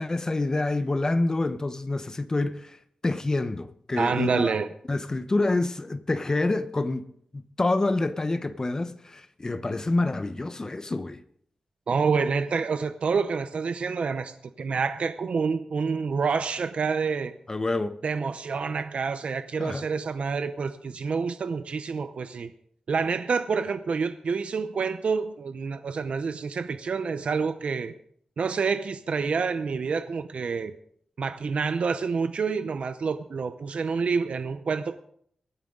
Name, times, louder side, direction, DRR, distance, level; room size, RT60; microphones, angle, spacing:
voice 1, 0.0-2.8 3.0-4.5 4.9-7.1 7.3-11.2 17.5-18.0 19.6-19.9, left 2 dB, 30° left, 0.8 m, -27 dB
voice 2, 4.0-4.7 11.9-17.3 18.0-22.5 22.9-27.9 28.4-30.7 31.2-35.0, right 5 dB, 65° right, 0.7 m, -28 dB
23.5 x 9.2 x 3.8 m
wide cardioid pair, 110°, 2 cm